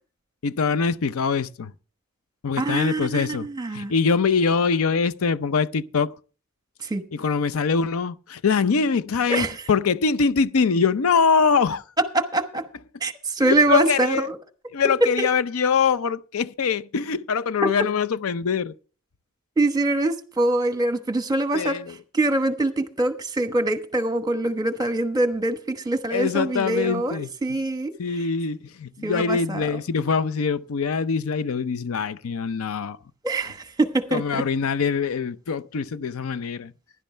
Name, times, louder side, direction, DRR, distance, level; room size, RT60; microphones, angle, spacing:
voice 1, 0.4-1.7 2.4-3.5 3.7-6.1 7.1-11.8 13.4-14.3 14.7-18.7 21.5-21.9 26.1-27.3 28.0-33.0 34.1-36.7, left 5 dB, 90° left, 0.5 m, -23 dB
voice 2, 2.6-3.9 6.8-7.0 9.3-9.5 12.1-12.6 13.0-14.4 15.2-15.3 19.6-21.8 22.1-27.9 29.0-29.8 33.2-34.4, right 2 dB, 20° right, 1.1 m, -24 dB
15.5 x 11.0 x 3.3 m
head